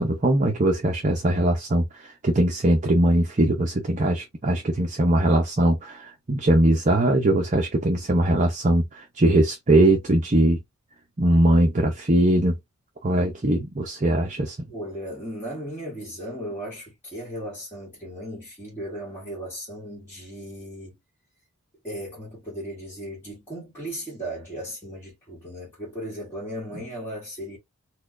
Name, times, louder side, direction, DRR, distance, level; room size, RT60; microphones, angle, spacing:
voice 1, 0.0-10.6 11.2-12.6 13.0-14.6, right 1 dB, 35° right, 0.6 m, -21 dB
voice 2, 14.7-21.0 21.8-27.6, equal, 10° left, 1.4 m, -36 dB
4.3 x 2.3 x 2.5 m
head